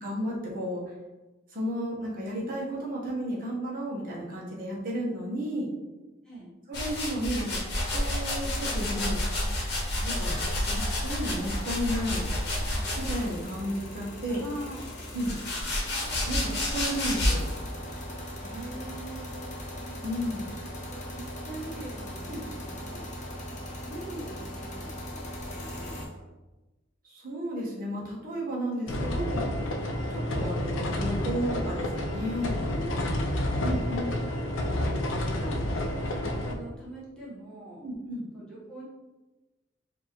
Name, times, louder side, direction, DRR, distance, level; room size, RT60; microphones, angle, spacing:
voice 1, 0.0-0.8 1.5-5.7 6.7-7.6 7.9-9.2 10.0-10.4 10.7-12.2 13.0-14.4 15.1-15.3 16.3-17.5 20.0-20.4 22.3-22.4 27.0-29.5 30.1-32.5 33.6-34.0 37.8-38.2, equal, 45° right, -4 dB, 1.1 m, -33 dB
voice 2, 6.2-6.6 14.3-15.4 18.4-19.5 19.8-19.9 20.9-23.1 23.5-23.6 23.8-26.3 32.6-32.9 36.1-37.8 38.3-38.8, right 1 dB, 5° left, -8 dB, 1.2 m, -44 dB
sound 1, 6.7-13.5 14.3-17.6, left 1 dB, 55° left, 1.1 m, -30 dB
sound 2, 7.8-26.1, equal, 40° left, 0.8 m, -40 dB
sound 3, 28.9-36.5, left 1 dB, 80° left, 0.5 m, -29 dB
4.5 x 2.8 x 2.9 m, 1.1 s
head